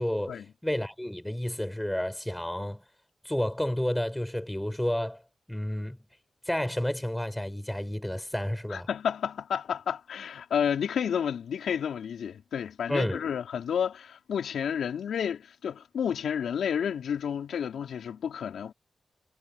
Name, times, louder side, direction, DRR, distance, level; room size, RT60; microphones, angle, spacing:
voice 1, 0.0-2.8 3.2-5.2 5.5-6.0 6.5-8.9 12.9-13.2, left 1 dB, 5° left, 7.4 m, -30 dB
voice 2, 8.7-18.7, left 8 dB, 85° left, 4.3 m, -31 dB
cardioid pair, 60°, 0 cm